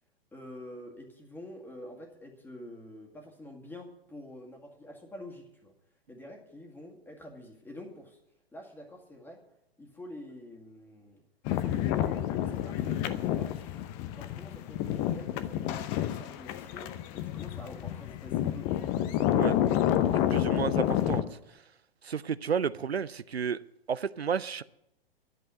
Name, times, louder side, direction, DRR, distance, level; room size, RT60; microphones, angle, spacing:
voice 1, 0.3-5.7 6.1-8.2 8.5-9.4 9.8-11.2 11.5-13.6 14.1-19.9, left 1 dB, 5° left, 2.0 m, -47 dB
sound 1, 11.5-21.2, left 11 dB, 30° left, 0.7 m, -29 dB
voice 2, 20.3-21.2 22.0-23.6 23.9-24.6, right 7 dB, 90° right, 0.5 m, -31 dB
11.0 x 7.6 x 9.5 m
figure-of-eight pair, 110°, 30 cm